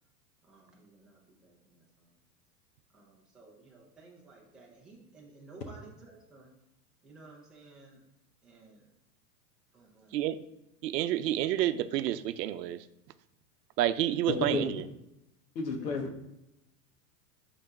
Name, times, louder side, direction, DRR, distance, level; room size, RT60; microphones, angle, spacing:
voice 1, 0.4-2.2 2.9-6.5 7.0-8.0 8.4-8.9 9.7-10.2 15.7-16.0, right 3 dB, ahead, -5 dB, 0.3 m, -55 dB
voice 2, 10.8-12.8 13.8-14.8, right 12 dB, 80° right, 13 dB, 0.7 m, -29 dB
voice 3, 14.3-14.6 15.5-16.2, left 4 dB, 85° left, 4 dB, 1.6 m, -31 dB
5.8 x 4.0 x 5.1 m, 0.87 s
supercardioid pair, 140°, 48 cm